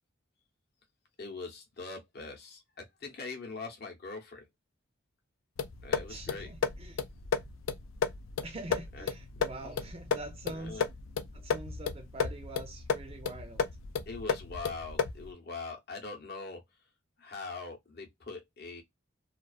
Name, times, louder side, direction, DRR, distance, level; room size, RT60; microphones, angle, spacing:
voice 1, 1.2-4.5 5.8-6.5 8.9-9.1 9.6-9.8 10.5-10.8 14.1-16.6 17.2-18.8, left 3 dB, 50° left, 0.7 m, -42 dB
sound 1, 5.6-15.3, left 6 dB, 85° left, 0.4 m, -34 dB
voice 2, 6.1-7.0 8.4-10.8 11.3-13.6, right 2 dB, 30° right, 0.4 m, -44 dB
2.4 x 2.3 x 2.3 m
head